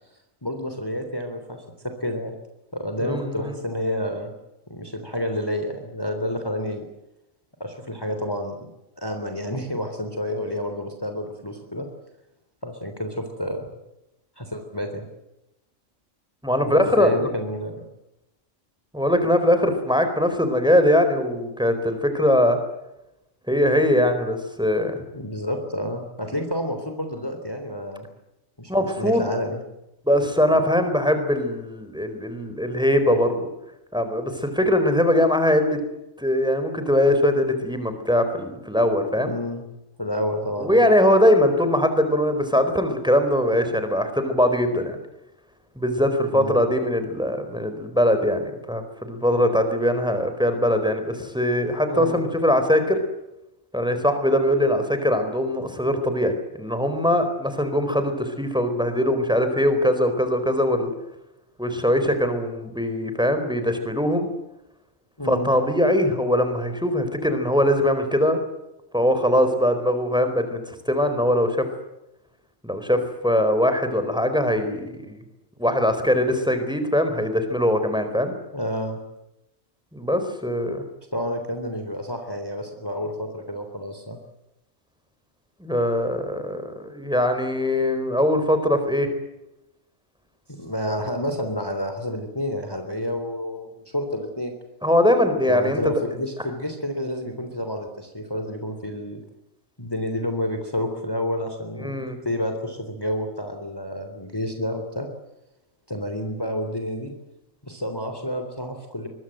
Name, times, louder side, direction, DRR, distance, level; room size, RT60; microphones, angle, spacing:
voice 1, 0.4-2.3 2.7-4.3 4.7-6.9 7.6-8.7 9.0-11.9 12.6-13.7 14.4-15.1 16.7-17.8 25.1-28.0 28.6-29.6 39.2-39.6 40.0-40.8 46.3-46.6 51.9-52.2 65.2-65.5 78.5-79.0 81.1-84.2 90.5-94.5 95.4-99.2 99.8-105.1 105.9-107.1 107.6-109.1, left 1 dB, 15° left, 5 dB, 3.3 m, -29 dB
voice 2, 3.0-3.5 16.4-17.3 18.9-22.6 23.5-25.0 28.7-29.2 30.1-33.5 33.9-35.8 36.2-39.3 40.6-45.0 45.8-53.0 53.7-60.9 61.6-64.3 65.2-68.4 68.9-71.6 72.6-75.2 75.6-78.3 79.9-80.8 85.6-89.1 94.8-95.8 101.8-102.2, left 1 dB, 5° right, 8 dB, 4.3 m, -21 dB
24.0 x 23.0 x 7.8 m, 0.90 s
omnidirectional pair, 1.4 m